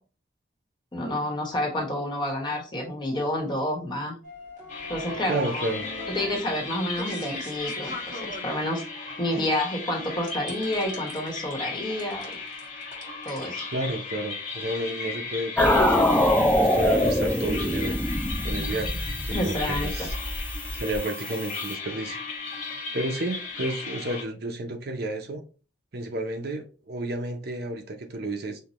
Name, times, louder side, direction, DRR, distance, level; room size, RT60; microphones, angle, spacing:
voice 1, 0.9-4.1 4.9-5.7 6.1-7.9 8.4-8.8 9.2-12.4 13.2-13.7 19.3-20.1, left 1 dB, 25° left, 1.2 m, -29 dB
sound 1, 4.2-8.4 10.3-11.5 12.0-13.4, left 1 dB, 40° right, 1.6 m, -39 dB
sound 2, 4.7-24.2, left 4 dB, 40° left, 1.0 m, -36 dB
voice 2, 5.3-5.9 13.7-18.0 18.4-20.2 20.7-22.2 22.9-25.4 25.9-28.6, right 1 dB, 60° right, 0.7 m, -31 dB
sound 3, 15.6-21.7, left 1 dB, 5° left, 0.4 m, -24 dB
5.5 x 2.2 x 3.0 m
head